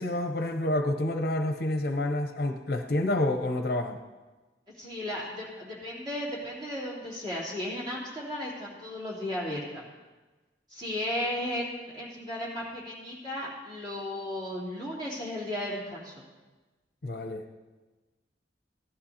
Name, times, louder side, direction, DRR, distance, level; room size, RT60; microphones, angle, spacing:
voice 1, 0.0-4.0 17.0-17.6, left 1 dB, 55° left, 6 dB, 0.7 m, -28 dB
voice 2, 4.8-9.8 10.7-16.2, left 1 dB, 25° right, -6 dB, 3.2 m, -35 dB
16.0 x 11.5 x 2.8 m, 1.2 s
head